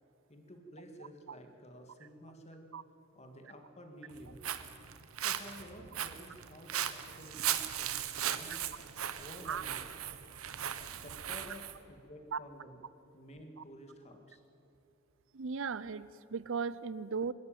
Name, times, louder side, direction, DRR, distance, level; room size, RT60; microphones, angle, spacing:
voice 1, 0.3-2.7 3.1-4.4 5.2-8.6 9.2-9.9 10.9-12.8 13.1-14.4, equal, 30° left, 4 dB, 2.2 m, -51 dB
Walk footsteps, 4.1-11.8, right 10 dB, 85° right, 1.0 m, -38 dB
voice 2, 15.3-17.3, right 5 dB, 65° right, 18 dB, 0.6 m, -36 dB
24.0 x 13.0 x 9.1 m, 2.9 s
head